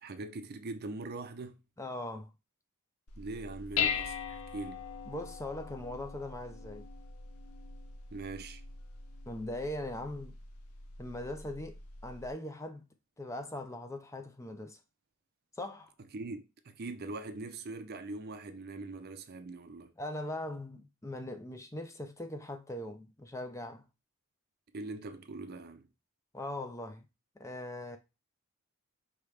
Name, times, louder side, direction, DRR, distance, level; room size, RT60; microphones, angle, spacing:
voice 1, 0.0-1.6 3.2-4.9 8.1-8.6 16.1-19.9 24.7-25.9, right 2 dB, 45° right, 0.5 m, -42 dB
voice 2, 1.8-2.3 5.1-6.8 9.3-10.3 11.0-12.9 13.2-14.8 15.6-15.9 20.0-23.8 26.3-27.1 27.4-28.0, left 1 dB, 15° left, 0.5 m, -40 dB
Dishes pots and pans, 3.1-12.3, left 7 dB, 85° left, 0.6 m, -40 dB
4.9 x 3.0 x 3.2 m
head